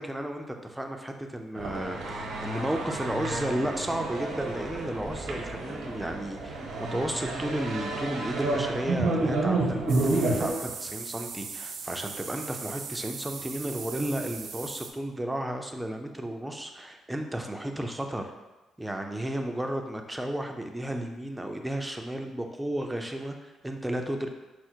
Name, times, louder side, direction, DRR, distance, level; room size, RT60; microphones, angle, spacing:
voice 1, 0.0-18.3 18.8-24.3, right 1 dB, 10° right, 4 dB, 0.5 m, -33 dB
sound 1, 1.5-10.5, right 2 dB, 85° right, 0.9 m, -30 dB
sound 2, 9.9-14.9, right 5 dB, 65° right, 0.5 m, -39 dB
4.7 x 2.0 x 4.4 m, 1.1 s
cardioid pair, 90°, 0 cm